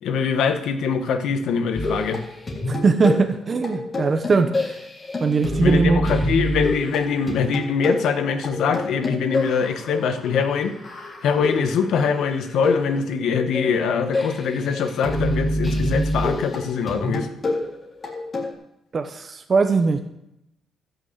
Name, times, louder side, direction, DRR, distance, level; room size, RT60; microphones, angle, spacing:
voice 1, 0.0-2.2 5.6-10.7 11.2-17.3, left 6 dB, 75° left, 7 dB, 1.4 m, -23 dB
sound 1, 1.7-18.5, left 1 dB, 30° left, 4.3 m, -27 dB
voice 2, 2.7-4.8 5.2-6.0 18.9-20.0, right 4 dB, 40° right, 6 dB, 1.0 m, -20 dB
13.5 x 6.4 x 8.0 m, 0.84 s
cardioid pair, 90°, 0 cm